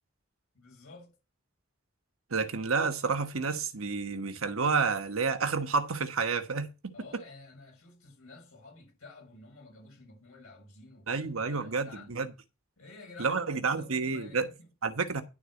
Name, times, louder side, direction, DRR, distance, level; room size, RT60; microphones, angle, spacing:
voice 1, 0.5-1.2 6.9-12.2 12.8-13.4 13.7-14.7, left 3 dB, 90° left, 7.5 m, -51 dB
voice 2, 2.3-6.9 11.1-12.3 13.2-14.5 14.8-15.2, right 4 dB, 80° right, 1.2 m, -30 dB
11.0 x 4.0 x 7.6 m
head